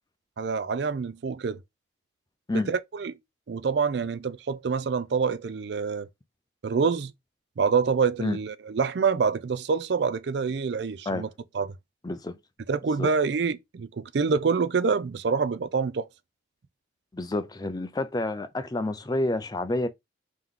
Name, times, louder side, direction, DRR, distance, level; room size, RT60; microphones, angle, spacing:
voice 1, 0.4-1.6 2.5-3.2 3.5-6.1 6.6-7.1 7.6-11.3 11.5-11.7 12.7-16.1, right 5 dB, 60° right, 0.4 m, -26 dB
voice 2, 12.0-12.4 13.0-13.1 17.1-19.9, left 2 dB, 20° left, 0.4 m, -29 dB
3.5 x 3.0 x 3.6 m
head